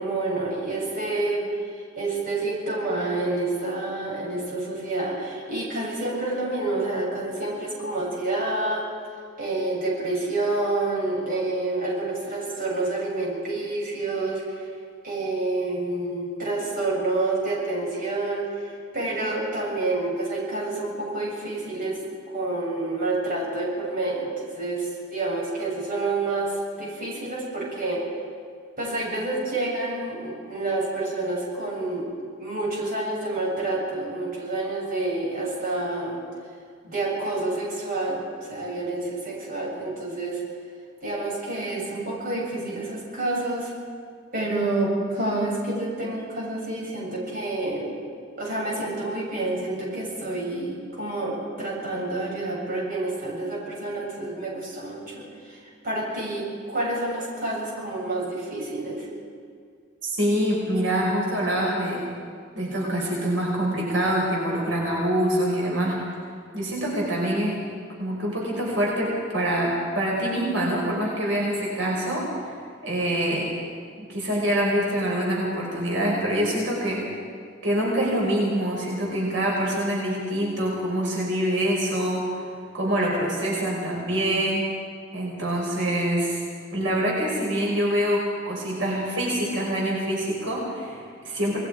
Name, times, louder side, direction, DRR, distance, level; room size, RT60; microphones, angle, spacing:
voice 1, 0.0-8.9 9.4-14.7 15.0-22.0 22.3-28.0 28.8-36.2 36.8-38.2 38.5-40.4 41.0-43.7 44.3-48.0 48.4-59.1, right 2 dB, 45° right, -4 dB, 7.5 m, -28 dB
voice 2, 60.0-62.0 62.5-66.0 66.5-67.6 68.0-72.3 72.8-73.5 74.0-77.0 77.6-82.2 82.7-84.6 85.1-86.4 86.7-91.6, right 1 dB, 85° right, -3 dB, 5.2 m, -25 dB
28.0 x 20.5 x 5.0 m, 2.2 s
head